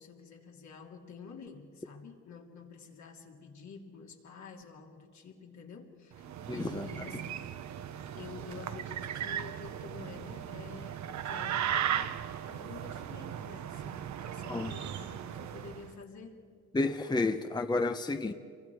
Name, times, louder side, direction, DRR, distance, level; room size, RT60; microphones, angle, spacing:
voice 1, 0.0-6.3 6.5-7.4 8.2-12.1 12.5-16.5, left 5 dB, 65° left, 1 dB, 2.9 m, -49 dB
sound 1, 6.1-15.9, right 9 dB, 65° right, 1.0 m, -37 dB
voice 2, 6.5-6.9 14.5-14.7 16.7-18.3, left 3 dB, 15° left, 8 dB, 0.8 m, -30 dB
28.5 x 23.5 x 4.8 m, 2.3 s
cardioid pair, 90°, 30 cm